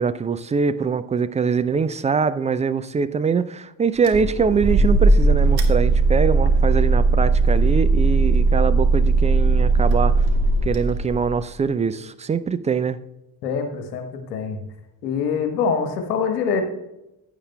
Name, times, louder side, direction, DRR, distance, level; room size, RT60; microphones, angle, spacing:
voice 1, 0.0-10.3 10.6-13.0, right 5 dB, 15° right, 12 dB, 0.3 m, -23 dB
sound 1, 4.0-11.4, right 3 dB, 50° right, 1.8 m, -18 dB
voice 2, 13.4-14.6 15.0-16.6, left 6 dB, 75° left, 5 dB, 1.3 m, -24 dB
15.5 x 9.4 x 2.3 m, 0.92 s
figure-of-eight pair, 45°, 48 cm